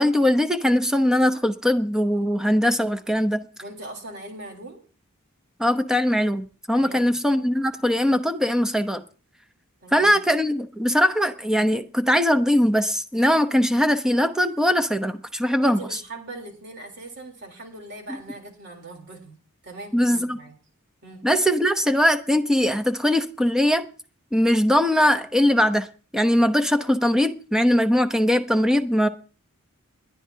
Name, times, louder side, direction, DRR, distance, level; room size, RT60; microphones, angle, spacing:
voice 1, 0.0-3.4 5.6-9.0 9.9-15.8 18.1-18.2 19.9-20.4 21.2-23.9 24.3-25.9 26.1-29.1, equal, 5° right, 9 dB, 0.8 m, -21 dB
voice 2, 3.6-4.8 6.7-7.2 9.8-10.2 15.6-19.4 19.6-20.6 21.0-21.2, right 2 dB, 55° right, 2 dB, 3.6 m, -40 dB
21.5 x 11.0 x 2.8 m, 0.36 s
head